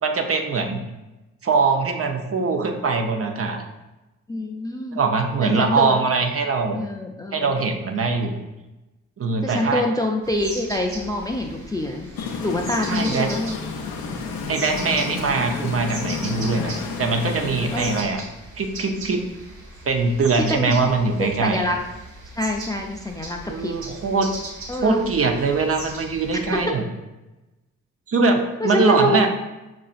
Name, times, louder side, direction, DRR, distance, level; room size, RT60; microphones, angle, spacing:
voice 1, 0.0-0.8 1.4-3.6 4.9-6.8 7.3-8.4 9.2-9.8 12.9-13.3 14.5-18.2 18.6-19.2 19.9-21.6 23.5-24.3 24.8-26.8 28.1-29.3, right 4 dB, 40° right, 4 dB, 0.6 m, -22 dB
voice 2, 4.3-5.0 5.4-6.0 6.7-7.5 9.4-12.1 12.4-13.6 17.7-18.0 20.4-20.8 21.2-21.8 22.3-23.8 24.7-25.0 26.3-26.7 28.6-29.3, left 1 dB, 10° left, 1 dB, 0.4 m, -25 dB
sound 1, 10.2-26.6, right 2 dB, 75° right, 1.1 m, -39 dB
sound 2, 12.2-18.0, left 4 dB, 80° left, 0.6 m, -31 dB
5.6 x 2.4 x 2.4 m, 1.0 s
hypercardioid pair, 40°, 36 cm